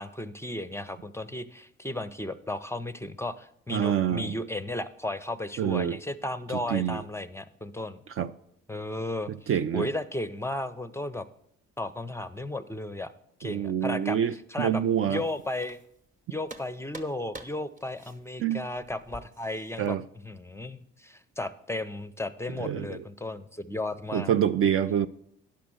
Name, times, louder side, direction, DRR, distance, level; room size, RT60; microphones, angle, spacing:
voice 1, 0.0-8.0 8.7-11.3 11.8-13.1 13.4-14.8 15.1-15.8 16.3-20.0 20.2-24.3, left 1 dB, 10° left, 0.5 m, -34 dB
voice 2, 3.7-4.4 5.6-6.0 6.7-7.0 8.2-8.3 9.5-9.9 13.4-15.2 18.4-18.6 19.8-20.0 22.6-23.0 24.1-25.1, right 9 dB, 40° right, 0.4 m, -26 dB
sound 1, 14.8-16.1 16.5-19.9, right 2 dB, 20° right, 1.0 m, -48 dB
10.5 x 6.0 x 6.2 m
hypercardioid pair, 45°, 33 cm